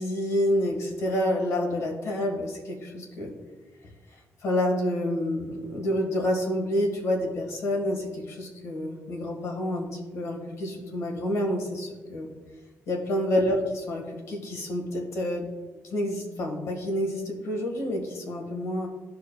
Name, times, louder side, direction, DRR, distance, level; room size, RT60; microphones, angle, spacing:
voice 1, 0.0-3.3 4.4-12.3 12.9-15.5 15.9-18.9, left 1 dB, 65° left, 1 dB, 1.6 m, -28 dB
12.0 x 4.7 x 2.2 m, 1.3 s
cardioid pair, 165°, 5 cm